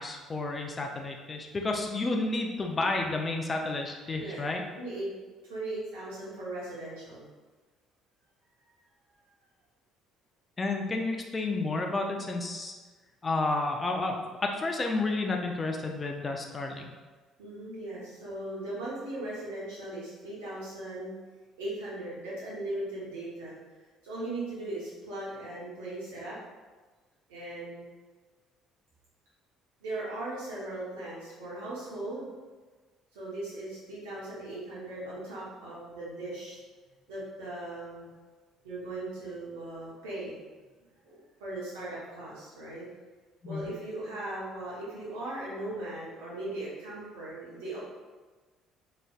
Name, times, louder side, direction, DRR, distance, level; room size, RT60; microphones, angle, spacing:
voice 1, 0.0-4.6 10.6-12.7 13.2-16.9 43.4-43.7, left 2 dB, 30° left, 2 dB, 0.5 m, -31 dB
voice 2, 4.7-5.1 5.4-7.3 17.4-21.1 21.6-23.5 24.0-26.4 27.3-27.9 29.8-32.3 33.1-36.6 37.1-38.1 38.6-40.4 41.0-42.8 43.5-47.8, right 1 dB, 80° right, -8 dB, 1.0 m, -38 dB
3.9 x 3.1 x 2.3 m, 1.3 s
hypercardioid pair, 55°, 0 cm